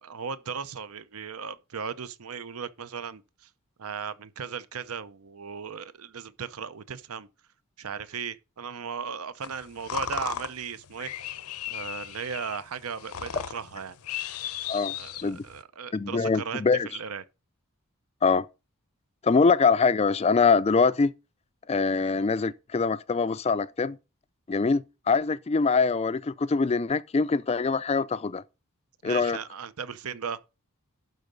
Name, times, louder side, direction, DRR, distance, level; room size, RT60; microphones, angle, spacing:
voice 1, 0.0-3.5 3.8-7.3 7.8-11.1 11.7-14.0 14.9-17.2 29.0-30.4, right 6 dB, 75° right, 0.7 m, -37 dB
sound 1, 9.4-15.6, left 9 dB, 85° left, 0.7 m, -36 dB
voice 2, 15.9-16.9 18.2-18.5 19.2-21.1 21.7-24.0 24.5-28.4 29.0-29.4, left 4 dB, 30° left, 0.3 m, -23 dB
12.0 x 4.0 x 5.2 m
head